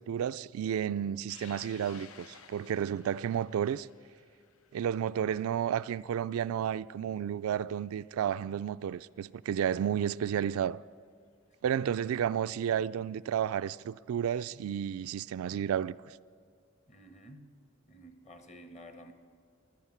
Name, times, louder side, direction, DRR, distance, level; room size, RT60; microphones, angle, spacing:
voice 1, 0.0-3.9 4.7-10.8 11.6-16.2, right 9 dB, 75° right, 0.3 m, -32 dB
sound 1, 1.3-8.0 8.4-8.5 9.7-9.8 12.0-12.1 13.5-13.8, left 7 dB, 80° left, 0.8 m, -56 dB
voice 2, 16.9-17.5 17.8-19.1, equal, 30° left, 1.1 m, -52 dB
15.5 x 10.5 x 7.2 m
head